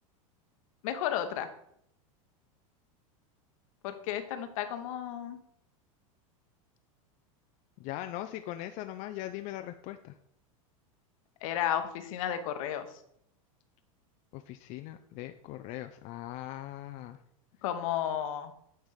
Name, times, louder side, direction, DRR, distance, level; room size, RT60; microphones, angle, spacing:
voice 1, 0.8-1.5 3.8-5.4 11.4-12.9 17.6-18.5, left 10 dB, 70° left, 8 dB, 1.1 m, -33 dB
voice 2, 7.8-10.2 14.3-17.2, left 14 dB, 45° left, 7 dB, 0.5 m, -40 dB
9.6 x 3.4 x 5.7 m, 0.73 s
supercardioid pair, 115°, 18 cm